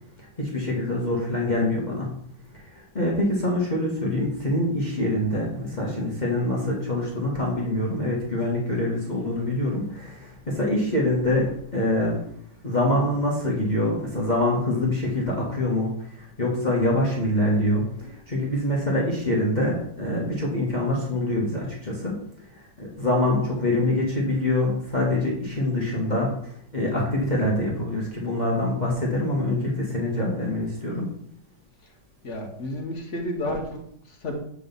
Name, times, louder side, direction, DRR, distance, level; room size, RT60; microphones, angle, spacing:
voice 1, 0.2-2.1 2.5-12.2 12.6-22.2 22.5-31.1, left 1 dB, 25° left, -3 dB, 1.2 m, -25 dB
voice 2, 32.2-34.4, left 1 dB, 45° left, 2 dB, 1.2 m, -31 dB
8.0 x 3.8 x 5.3 m, 0.68 s
omnidirectional pair, 2.0 m